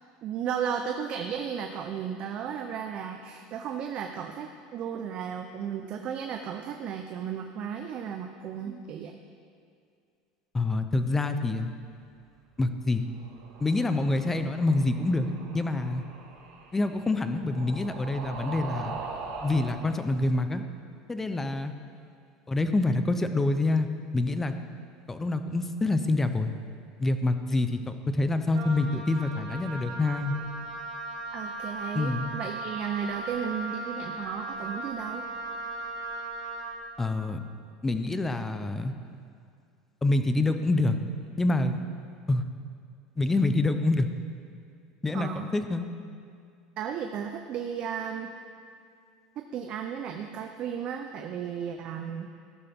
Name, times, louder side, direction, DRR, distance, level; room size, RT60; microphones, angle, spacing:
voice 1, 0.2-9.2 31.3-35.3 45.1-45.5 46.8-48.3 49.4-52.3, right 8 dB, 45° right, 5 dB, 0.6 m, -34 dB
voice 2, 10.5-11.7 12.6-13.1 13.6-16.0 16.7-18.9 19.4-20.6 21.1-21.7 22.5-23.9 24.1-24.5 25.1-26.5 27.0-30.3 31.9-32.3 37.0-37.4 37.8-38.9 40.0-41.0 41.4-41.8 42.3-42.4 43.2-44.1 45.0-45.9, left 2 dB, 15° left, 9 dB, 0.6 m, -26 dB
sound 1, 13.1-19.8, right 4 dB, 65° right, 1.7 m, -42 dB
Wind instrument woodwind instrument, 28.5-36.8, right 2 dB, 80° right, 2.8 m, -37 dB
14.0 x 11.5 x 3.6 m, 2.3 s
supercardioid pair, 130°, 2 cm